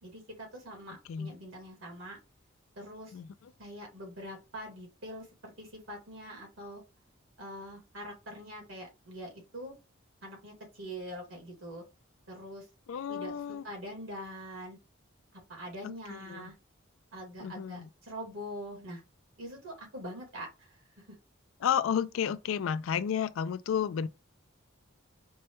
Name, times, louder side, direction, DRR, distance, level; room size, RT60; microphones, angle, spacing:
voice 1, 0.0-2.2 2.8-3.2 3.6-6.8 7.4-9.7 10.2-11.8 12.3-12.7 13.1-14.8 15.3-16.5 17.1-19.0 19.4-21.2, equal, 80° right, 1.7 m, -44 dB
voice 2, 12.9-13.6 15.8-16.5 17.4-17.9 21.6-24.1, left 8 dB, 80° left, 0.3 m, -32 dB
4.4 x 2.2 x 2.9 m
head